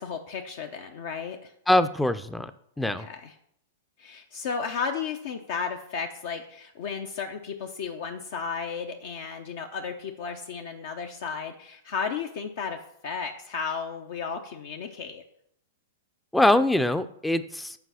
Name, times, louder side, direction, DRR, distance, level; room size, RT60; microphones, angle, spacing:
voice 1, 0.0-1.5 2.8-3.3 4.0-15.2, left 6 dB, 60° left, 4 dB, 0.7 m, -34 dB
voice 2, 1.7-2.5 2.8-3.1 16.3-17.8, left 1 dB, 5° left, 12 dB, 0.5 m, -23 dB
7.9 x 4.7 x 5.7 m, 0.71 s
hypercardioid pair, 105°, 0 cm